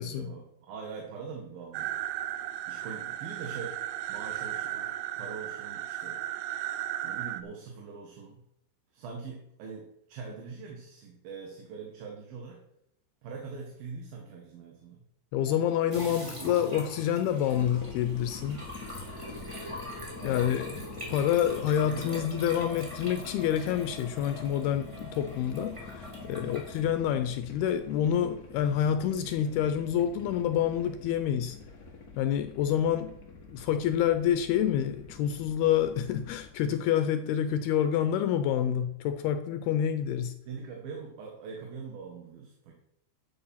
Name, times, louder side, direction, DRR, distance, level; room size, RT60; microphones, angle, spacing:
voice 1, 0.0-2.0 2.7-3.8 4.1-6.2 7.0-8.4 8.9-12.6 13.2-15.0 19.2-19.6 20.1-20.7 21.9-22.7 26.4-26.6 40.5-42.7, right 5 dB, 65° right, 3.3 m, -43 dB
sound 1, 1.7-7.4, right 12 dB, 80° right, 2.4 m, -35 dB
voice 2, 15.3-18.7 20.2-31.6 32.2-33.1 33.5-40.4, left 10 dB, 80° left, 2.5 m, -28 dB
sound 2, 15.9-26.8, left 1 dB, 10° right, 2.3 m, -42 dB
sound 3, 17.5-36.5, left 4 dB, 65° left, 0.9 m, -47 dB
11.5 x 8.8 x 5.7 m
omnidirectional pair, 4.9 m